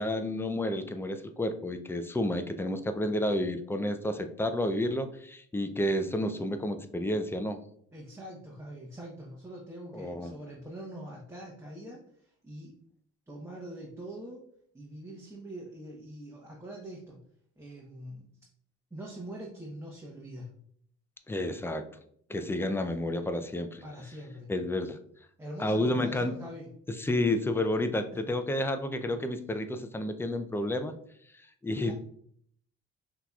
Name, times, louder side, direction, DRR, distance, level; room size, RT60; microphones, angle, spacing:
voice 1, 0.0-7.6 9.9-10.3 21.3-21.8 22.3-23.8 24.5-25.0 25.6-26.3 27.0-30.9 31.6-31.9, left 1 dB, 10° left, 8 dB, 0.4 m, -30 dB
voice 2, 7.9-12.7 13.3-14.4 14.7-17.2 17.6-18.3 18.9-20.5 23.8-24.5 25.4-26.7 31.8-31.9, right 1 dB, 10° right, -3 dB, 0.9 m, -43 dB
6.0 x 2.9 x 2.3 m, 0.64 s
cardioid pair, 90°, 30 cm